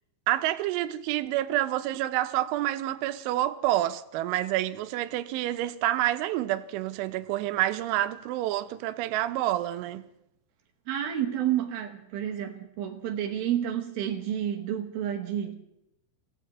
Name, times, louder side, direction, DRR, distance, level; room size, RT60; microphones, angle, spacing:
voice 1, 0.3-10.0, right 14 dB, 90° right, 3.2 m, -28 dB
voice 2, 10.9-15.5, right 10 dB, 70° right, 2.5 m, -30 dB
27.5 x 17.0 x 3.0 m
omnidirectional pair, 5.4 m